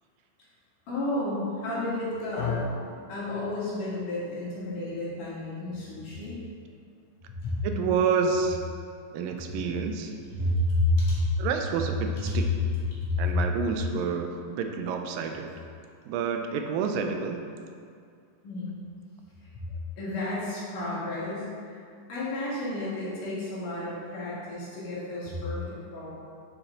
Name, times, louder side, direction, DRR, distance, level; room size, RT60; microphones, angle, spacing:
voice 1, 0.9-2.6 3.1-6.4 7.4-7.6 10.3-11.2 12.2-12.4 12.9-13.4 18.4-18.8 20.0-21.8 22.1-26.1, left 2 dB, 70° left, -8 dB, 3.4 m, -31 dB
sound 1, 2.4-10.6, left 4 dB, 85° left, 2.5 m, -41 dB
voice 2, 7.6-8.6 9.1-10.1 11.4-12.5 13.2-15.5 16.1-17.4, right 6 dB, 85° right, 5 dB, 2.3 m, -28 dB
7.9 x 6.0 x 3.8 m, 2.3 s
omnidirectional pair, 3.9 m